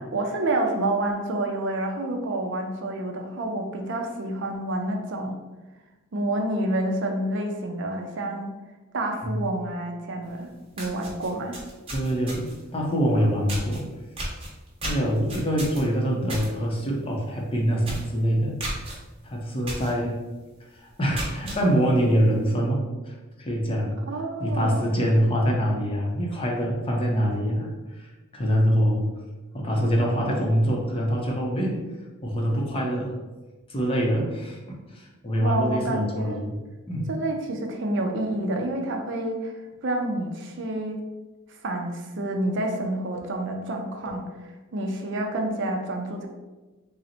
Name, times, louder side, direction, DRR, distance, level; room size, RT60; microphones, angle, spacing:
voice 1, 0.1-5.4 6.1-8.5 8.9-10.5 10.8-11.6 24.1-24.9 35.4-36.3 37.1-41.0 41.6-46.3, right 1 dB, 55° right, 2 dB, 0.5 m, -28 dB
sound 1, 10.3-10.4 10.7-12.6 13.5-13.8 14.2-16.5 16.8-17.1 17.4-17.5 17.8-18.1 18.6-18.9 19.7-19.9 20.4-20.5 20.9-21.6, right 1 dB, 25° right, 1.0 m, -34 dB
voice 2, 11.9-12.5 12.7-13.9 14.8-18.6 19.2-20.2 20.7-24.0 24.4-27.7 28.0-29.1 29.5-31.8 32.2-33.2 33.7-36.5 36.9-37.1 43.1-43.3 44.1-44.2, equal, 25° left, -1 dB, 0.6 m, -25 dB
3.8 x 2.1 x 4.2 m, 1.2 s
head